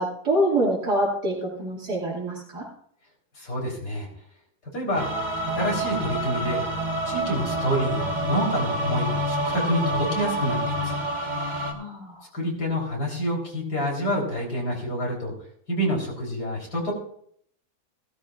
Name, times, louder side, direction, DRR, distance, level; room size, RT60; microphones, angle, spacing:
voice 1, 0.0-2.6 11.7-12.2, right 1 dB, 85° right, -5 dB, 2.9 m, -25 dB
voice 2, 3.4-4.1 4.7-5.1 5.5-6.6 7.1-11.0 12.3-15.3 15.7-16.9, equal, 75° left, -1 dB, 4.3 m, -27 dB
sound 1, 4.9-11.7, right 1 dB, 30° right, 1.6 m, -28 dB
17.0 x 13.0 x 2.4 m, 0.66 s
omnidirectional pair, 1.7 m